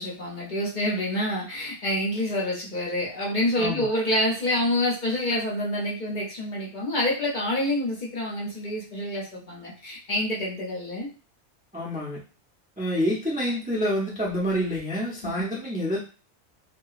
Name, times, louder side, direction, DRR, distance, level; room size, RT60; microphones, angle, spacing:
voice 1, 0.0-11.1 15.2-15.3, left 1 dB, 50° left, -3 dB, 0.7 m, -27 dB
voice 2, 3.6-3.9 11.7-12.2 12.8-16.0, equal, 15° right, -5 dB, 0.3 m, -27 dB
2.8 x 2.2 x 2.3 m, 0.36 s
omnidirectional pair, 1.2 m